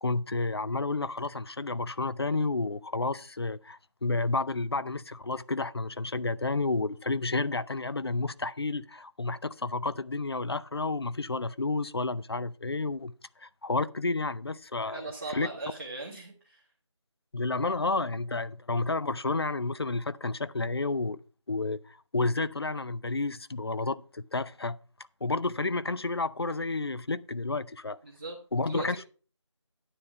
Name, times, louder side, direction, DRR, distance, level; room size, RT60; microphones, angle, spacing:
voice 1, 0.0-13.1 13.4-15.5 17.3-21.2 21.5-24.8 25.2-28.0 28.5-29.1, left 3 dB, 55° left, 0.5 m, -31 dB
voice 2, 14.8-16.6 28.0-28.4 28.7-29.0, right 3 dB, 25° right, 1.5 m, -39 dB
9.9 x 7.2 x 4.6 m
figure-of-eight pair, 175°, 16 cm